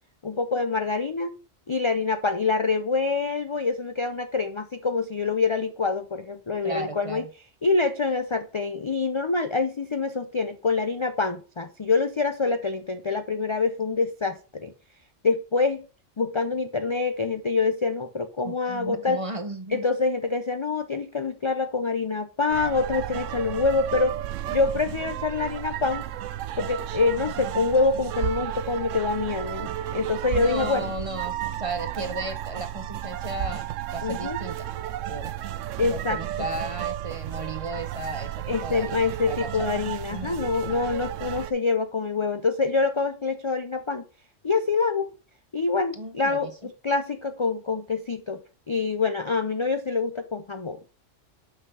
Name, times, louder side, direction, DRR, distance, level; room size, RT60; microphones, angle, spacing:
voice 1, 0.2-1.3 1.7-7.2 7.6-14.7 15.2-15.8 16.2-19.2 19.7-24.1 24.5-26.0 26.6-30.9 34.0-34.4 35.8-36.2 38.5-44.0 44.4-45.1 45.5-48.4 48.7-50.9, left 4 dB, 40° left, 8 dB, 0.4 m, -26 dB
voice 2, 6.6-7.3 18.4-19.8 30.3-34.7 35.1-35.3 35.9-38.3 38.6-39.7 40.1-40.4 45.9-46.5, right 2 dB, 30° right, 8 dB, 0.7 m, -35 dB
sound 1, 22.5-41.5, right 12 dB, 85° right, 0.9 m, -33 dB
sound 2, 23.7-35.5, left 4 dB, 80° left, 3.1 m, -54 dB
5.8 x 5.8 x 5.5 m, 0.36 s
omnidirectional pair, 1.3 m